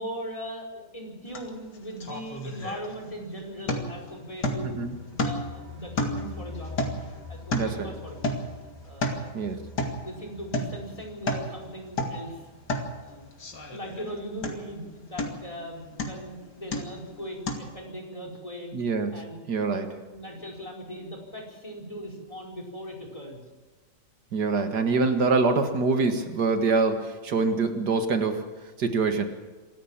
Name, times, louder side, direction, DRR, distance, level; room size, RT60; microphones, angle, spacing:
voice 1, 0.0-4.7 5.0-6.9 7.3-8.5 8.8-9.3 10.0-12.5 13.0-13.3 13.7-18.7 19.1-19.5 20.1-23.4, equal, 20° left, 2 dB, 4.9 m, -39 dB
sound 1, 1.4-1.5 1.8-3.2 3.7-4.0 4.4-4.8 5.2-5.6 6.0-7.9 8.2-8.6 8.9-9.3 9.8-10.0 10.5-10.8 11.1-11.5 11.9-12.2 12.7-12.9 13.4-14.1 14.4-14.8 15.2-15.5 16.0-16.3 16.7-17.1 17.5-17.6, left 1 dB, 70° left, 3.0 m, -31 dB
sound 2, 4.4-15.1 15.4-15.5 15.8-15.9, left 4 dB, 25° right, 3.3 m, -46 dB
voice 2, 7.5-7.9 9.3-9.6 18.7-19.9 24.3-28.5 28.8-29.3, right 4 dB, 75° right, 7 dB, 2.2 m, -25 dB
26.0 x 14.0 x 7.4 m, 1.3 s
omnidirectional pair, 1.8 m